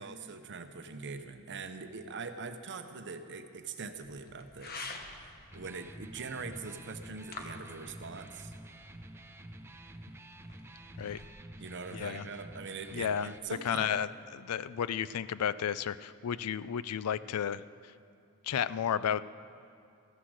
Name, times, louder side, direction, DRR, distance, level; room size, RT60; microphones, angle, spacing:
voice 1, 0.0-8.5 11.6-14.0, right 4 dB, 55° right, 8 dB, 0.8 m, -43 dB
sound 1, 4.0-11.3, left 3 dB, 45° left, 1.1 m, -49 dB
Electric guitar, 5.4-13.4, right 1 dB, 10° right, 0.5 m, -49 dB
voice 2, 11.9-12.2 12.9-13.3 13.6-17.9 18.4-19.2, left 8 dB, 90° left, 16 dB, 0.4 m, -33 dB
15.0 x 9.8 x 6.4 m, 2.5 s
head